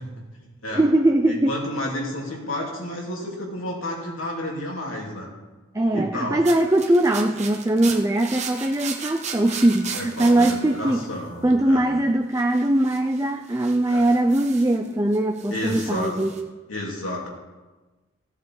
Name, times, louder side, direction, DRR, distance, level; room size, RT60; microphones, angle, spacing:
voice 1, 0.0-0.8 1.2-5.3 5.9-6.4 9.9-11.9 13.9-14.0 15.5-16.1 16.7-17.3, left 1 dB, 80° left, -2 dB, 2.9 m, -31 dB
voice 2, 0.7-1.6 5.7-11.1 11.4-16.4, right 1 dB, 15° right, 5 dB, 0.4 m, -21 dB
sound 1, 6.5-11.7 12.3-14.9 15.1-16.4, right 5 dB, 35° right, 1.2 m, -37 dB
16.5 x 7.4 x 4.8 m, 1.2 s
head